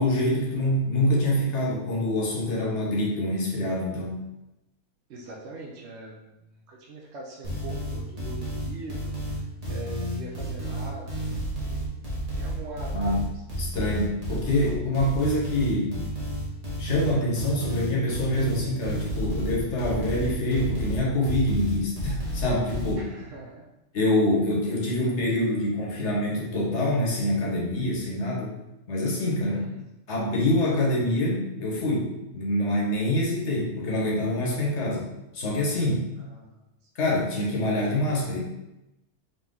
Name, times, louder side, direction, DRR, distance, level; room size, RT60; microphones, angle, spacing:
voice 1, 0.0-4.2 12.9-13.2 13.6-16.0 16.8-23.1 23.9-28.5 28.9-29.6 30.1-35.1 35.3-36.1 36.9-38.4, left 1 dB, 50° left, -2 dB, 1.2 m, -25 dB
voice 2, 5.1-11.3 11.6-13.2 23.0-23.6 29.5-29.9 36.2-36.6, right 2 dB, 60° right, -3 dB, 0.8 m, -43 dB
sound 1, 7.4-22.9, right 1 dB, 30° right, 1.0 m, -31 dB
4.0 x 2.9 x 3.7 m, 0.93 s
omnidirectional pair, 1.6 m